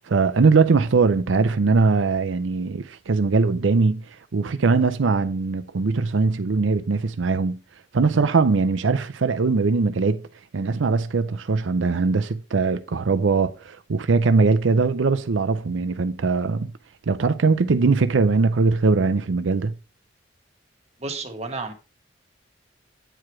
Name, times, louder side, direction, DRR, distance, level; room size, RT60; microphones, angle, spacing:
voice 1, 0.1-4.0 4.3-7.6 7.9-10.2 10.5-16.7 17.1-19.7, right 4 dB, 90° right, 0.5 m, -21 dB
voice 2, 21.0-21.7, right 3 dB, 35° right, 1.3 m, -31 dB
8.9 x 4.8 x 4.4 m
head